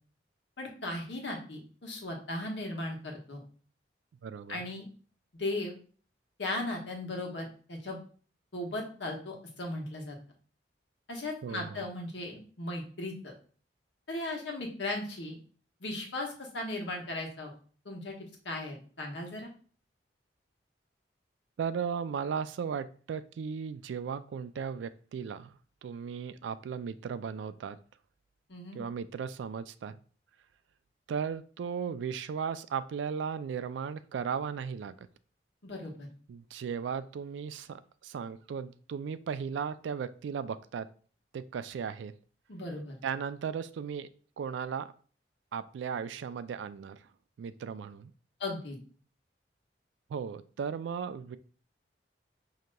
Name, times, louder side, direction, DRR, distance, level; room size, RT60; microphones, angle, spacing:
voice 1, 0.6-3.4 4.5-4.8 5.3-5.8 6.4-8.0 8.5-10.2 11.1-13.3 14.1-15.4 15.8-17.5 17.8-18.1 18.4-19.5 28.5-28.8 35.6-36.1 42.5-43.0 48.4-48.8, left 2 dB, 75° left, 1 dB, 1.2 m, -37 dB
voice 2, 4.2-4.6 11.4-11.8 21.6-27.8 28.7-30.0 31.1-35.0 36.3-40.9 41.3-42.1 43.0-44.1 44.4-44.9 45.5-47.0 47.4-48.1 50.1-51.4, right 6 dB, 85° right, 13 dB, 0.3 m, -36 dB
6.2 x 2.8 x 2.2 m, 0.42 s
head